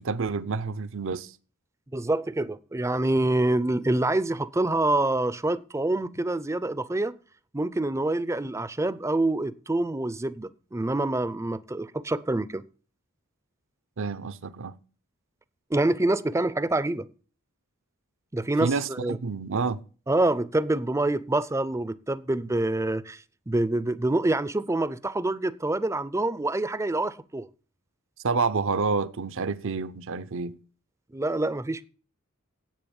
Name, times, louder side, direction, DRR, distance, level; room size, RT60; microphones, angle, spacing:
voice 1, 0.0-1.3 14.0-14.7 18.6-19.8 28.2-30.6, right 4 dB, 65° right, 0.7 m, -28 dB
voice 2, 1.9-7.1 7.5-12.6 15.7-17.1 18.3-19.2 20.1-27.5 31.1-31.9, right 2 dB, 15° right, 0.5 m, -26 dB
10.5 x 8.4 x 7.1 m
head